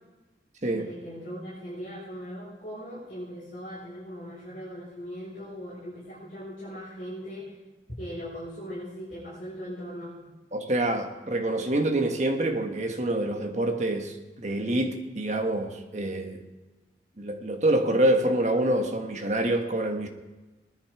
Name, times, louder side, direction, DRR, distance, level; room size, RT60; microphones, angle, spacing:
voice 1, 0.7-7.6 8.0-10.1, equal, 50° left, 5.1 m, -39 dB
voice 2, 10.5-16.4 17.2-20.1, right 1 dB, 40° right, 1.4 m, -26 dB
19.5 x 10.5 x 4.8 m
head